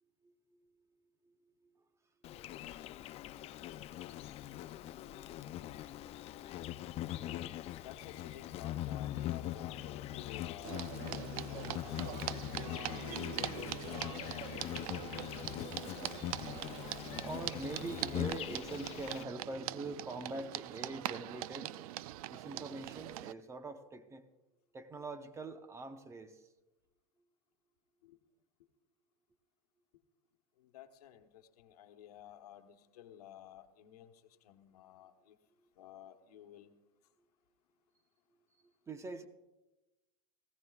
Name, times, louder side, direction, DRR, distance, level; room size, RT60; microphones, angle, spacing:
voice 1, 0.2-0.7 1.2-1.3 1.7-1.8 2.3-2.9 3.2-3.3 3.7-4.1 4.7-5.9 6.4-6.6 16.4-21.8 22.3-24.3 24.7-26.5 38.6-39.3, right 3 dB, 15° right, 0.8 m, -45 dB
Insect, 2.2-19.2, left 13 dB, 35° left, 0.4 m, -42 dB
voice 2, 7.2-15.5 28.0-28.2 30.7-34.1 34.4-35.4 35.8-36.7, left 11 dB, 90° left, 1.1 m, -53 dB
sound 1, 10.6-23.3, right 15 dB, 70° right, 0.4 m, -42 dB
19.0 x 15.5 x 2.4 m
supercardioid pair, 135°, 19 cm